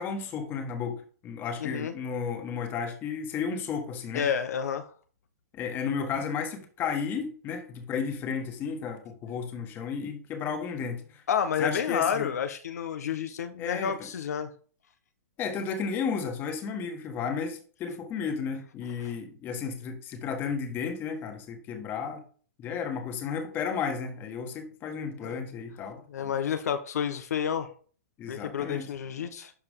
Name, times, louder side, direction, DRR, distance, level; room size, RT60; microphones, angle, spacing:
voice 1, 0.0-4.3 5.5-11.2 11.6-12.3 13.6-14.1 15.4-22.2 22.6-26.3 28.2-28.9, left 6 dB, 25° left, 1.7 m, -33 dB
voice 2, 1.6-1.9 4.1-4.9 11.3-14.5 19.0-19.1 25.2-25.4 26.1-27.7 28.3-29.5, left 8 dB, 80° left, 1.1 m, -30 dB
12.0 x 4.9 x 3.7 m
hypercardioid pair, 150°, 9 cm